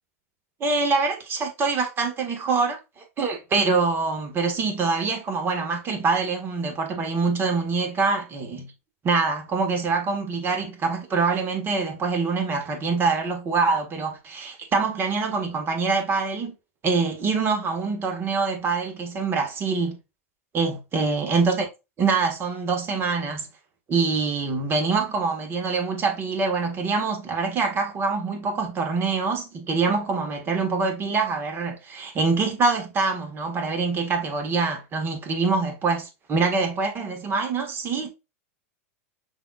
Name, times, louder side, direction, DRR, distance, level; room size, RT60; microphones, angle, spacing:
voice 1, 0.6-8.7 9.0-16.5 16.8-20.0 20.5-21.7 22.0-23.5 23.9-38.1, right 4 dB, 30° right, 1.4 m, -25 dB
5.5 x 3.8 x 2.3 m
hypercardioid pair, 105°, 8 cm